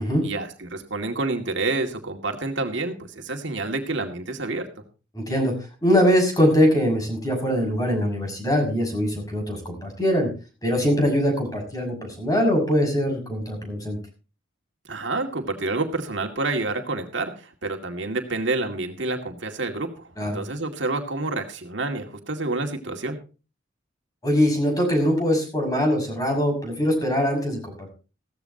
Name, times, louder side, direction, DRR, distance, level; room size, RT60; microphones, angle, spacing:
voice 1, 0.2-4.7 14.9-23.2, right 2 dB, 65° right, 4 dB, 2.3 m, -28 dB
voice 2, 5.1-5.6 5.8-10.3 10.6-14.0 20.2-20.4 24.2-27.9, equal, 20° left, 3 dB, 6.3 m, -22 dB
16.5 x 14.5 x 2.9 m, 0.33 s
head